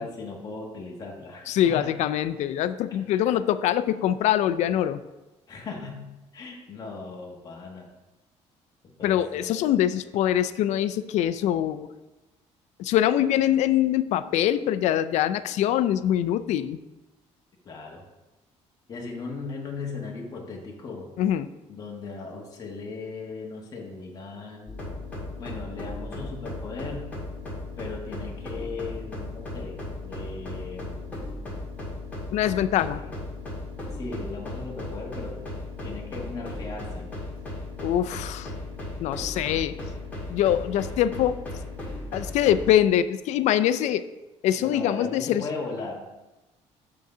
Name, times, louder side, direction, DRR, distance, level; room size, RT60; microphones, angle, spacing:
voice 1, 0.0-1.9 2.9-3.3 5.5-7.9 9.0-9.6 17.6-18.0 18.9-21.1 21.7-24.8 25.4-27.1 27.8-31.2 32.8-33.1 34.0-35.5 35.8-37.1 44.6-46.0, left 3 dB, 30° left, -1 dB, 1.3 m, -37 dB
voice 2, 1.5-5.0 9.0-11.9 12.8-16.8 21.2-21.5 32.3-33.0 37.8-38.5 39.0-39.7 40.3-41.4 42.1-44.0 44.4-45.4, left 11 dB, 75° left, 13 dB, 0.4 m, -23 dB
sound 1, 24.7-42.7, left 2 dB, 10° left, 1.9 m, -36 dB
8.3 x 3.8 x 5.5 m, 1.1 s
cardioid pair, 165°, 12 cm